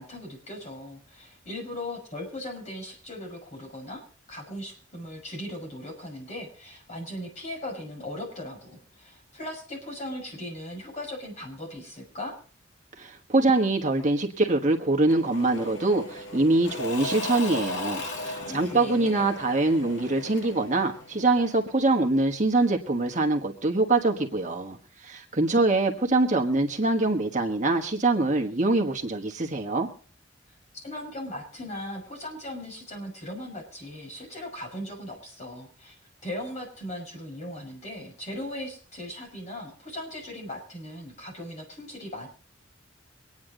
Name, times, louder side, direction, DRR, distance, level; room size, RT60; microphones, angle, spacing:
voice 1, 0.0-4.0 4.3-12.4 18.3-19.3 30.7-35.9 36.2-42.3, left 1 dB, 35° left, 0 dB, 6.2 m, -38 dB
voice 2, 13.0-29.9, right 2 dB, 40° right, 3 dB, 1.4 m, -24 dB
Engine / Mechanisms / Drill, 15.1-21.8, left 2 dB, 75° left, 2.1 m, -37 dB
24.5 x 9.6 x 3.8 m, 0.39 s
head